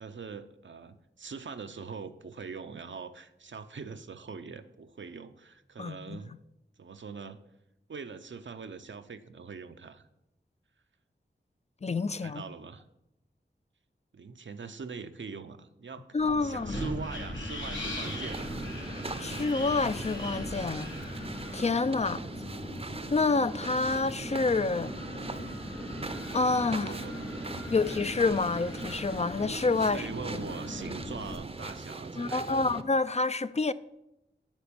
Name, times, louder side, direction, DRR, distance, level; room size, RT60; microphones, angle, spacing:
voice 1, 0.0-6.3 6.8-7.4 7.9-10.1 12.1-12.8 14.1-16.2 16.4-18.6 22.0-22.3 26.7-27.8 29.8-32.7, right 5 dB, 80° right, 0.6 m, -43 dB
voice 2, 5.8-6.2 11.8-12.4 16.1-16.7 19.2-20.9 21.5-22.2 23.1-24.9 26.3-26.9 27.7-30.0 32.2-33.7, left 3 dB, 35° left, 0.4 m, -28 dB
Wind, 16.2-31.3, left 1 dB, 90° left, 2.6 m, -39 dB
sound 1, 18.0-32.8, right 3 dB, 30° right, 0.6 m, -41 dB
9.0 x 5.0 x 7.0 m
wide cardioid pair, 60°, 19 cm